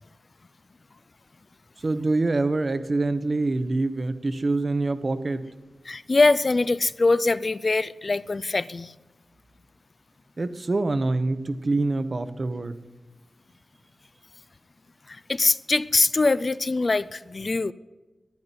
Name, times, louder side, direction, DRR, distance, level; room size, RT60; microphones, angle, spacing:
voice 1, 1.8-5.5 10.4-12.7, right 2 dB, 40° right, 11 dB, 0.8 m, -25 dB
voice 2, 5.9-8.9 15.1-17.7, left 3 dB, 40° left, 16 dB, 0.3 m, -23 dB
11.5 x 9.7 x 9.6 m, 1.2 s
wide cardioid pair, 105°, 0 cm